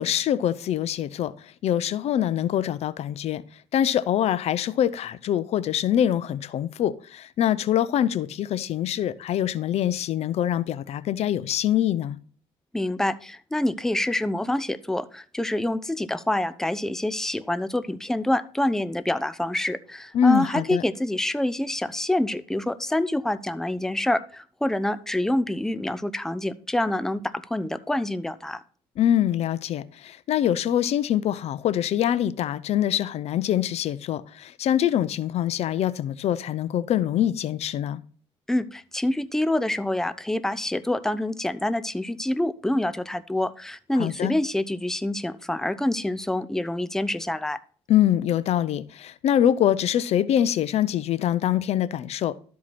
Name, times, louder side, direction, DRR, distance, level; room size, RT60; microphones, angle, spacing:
voice 1, 0.0-1.3 1.6-3.4 3.7-12.2 20.1-20.8 29.0-38.0 44.0-44.3 47.9-52.4, left 10 dB, 65° left, 0.6 m, -24 dB
voice 2, 12.7-28.6 38.5-47.6, left 1 dB, 5° left, 0.6 m, -26 dB
12.5 x 4.7 x 4.2 m
cardioid pair, 85°, 12 cm